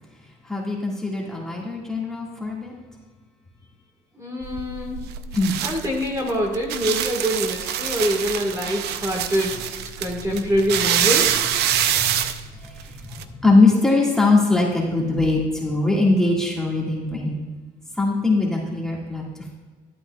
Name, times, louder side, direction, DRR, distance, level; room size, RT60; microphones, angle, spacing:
voice 1, 0.4-2.7 5.3-5.5 10.2-10.3 12.6-17.4 18.0-19.5, left 3 dB, 5° left, -3 dB, 1.7 m, -21 dB
voice 2, 4.1-5.0 5.6-11.4, equal, 20° right, 0 dB, 1.6 m, -25 dB
sound 1, 4.4-13.2, right 10 dB, 75° right, 0.5 m, -25 dB
12.5 x 8.6 x 2.3 m, 1.4 s
cardioid pair, 110°, 17 cm